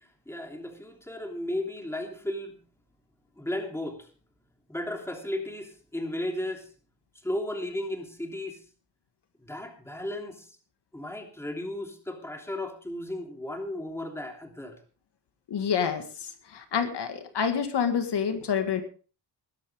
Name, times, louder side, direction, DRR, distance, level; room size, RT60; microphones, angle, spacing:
voice 1, 0.3-2.6 3.4-4.1 4.7-6.7 7.2-8.6 9.4-10.5 10.9-14.8, left 1 dB, 5° left, 3 dB, 3.0 m, -34 dB
voice 2, 15.5-18.8, left 7 dB, 65° left, 7 dB, 2.0 m, -28 dB
21.0 x 11.0 x 3.6 m, 0.38 s
cardioid pair, 110°, 44 cm